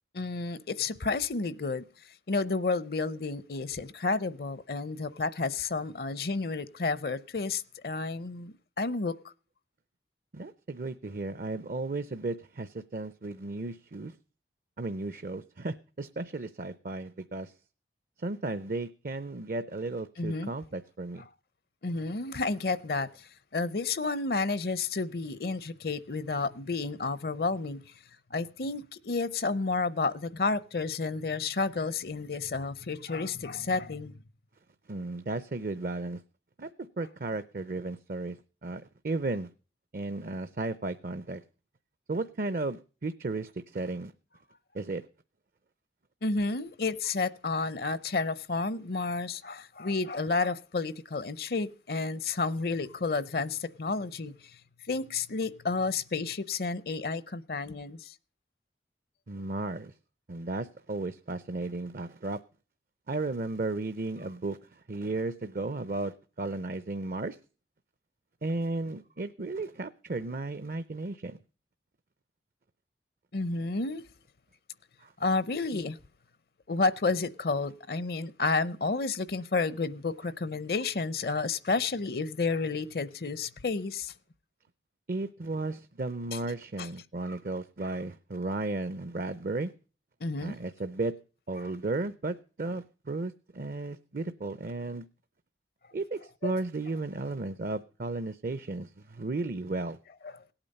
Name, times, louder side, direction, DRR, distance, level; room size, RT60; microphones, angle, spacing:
voice 1, 0.1-1.8 2.3-9.1 20.2-20.5 21.8-23.1 23.5-27.8 28.3-34.2 46.2-54.3 54.9-58.1 73.3-74.0 75.2-76.0 76.7-84.1 86.8-86.9 90.2-90.6 100.2-100.3, left 3 dB, 60° left, 0.6 m, -31 dB
voice 2, 10.3-14.2 14.8-17.5 18.2-21.2 34.9-36.2 36.6-36.7 37.0-39.5 39.9-41.4 42.1-44.1 44.7-45.0 59.3-59.9 60.3-62.4 63.1-67.4 68.4-71.4 75.0-75.1 85.1-89.7 90.4-91.1 91.5-95.1 95.9-100.0, right 2 dB, 50° right, 0.5 m, -34 dB
17.5 x 8.9 x 5.3 m
head